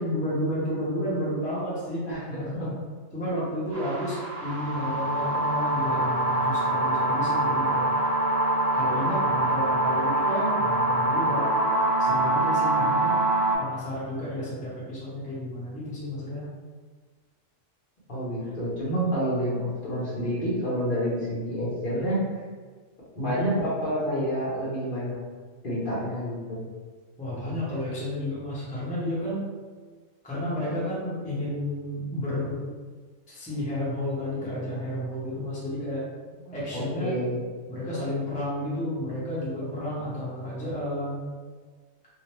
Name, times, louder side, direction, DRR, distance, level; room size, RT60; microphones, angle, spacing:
voice 1, 0.0-2.1 3.1-7.9 8.7-11.5 12.0-13.2 13.6-16.5 27.2-29.4 30.2-32.6 33.3-36.0 36.5-37.2 37.7-41.3, equal, 10° left, -8 dB, 0.5 m, -31 dB
voice 2, 2.0-2.7 18.1-22.2 23.1-25.2 25.6-26.7 36.4-37.4, equal, 45° left, -8 dB, 1.0 m, -28 dB
sound 1, 3.7-13.6, right 2 dB, 60° right, 0.8 m, -24 dB
2.8 x 2.0 x 3.1 m, 1.5 s
omnidirectional pair, 1.3 m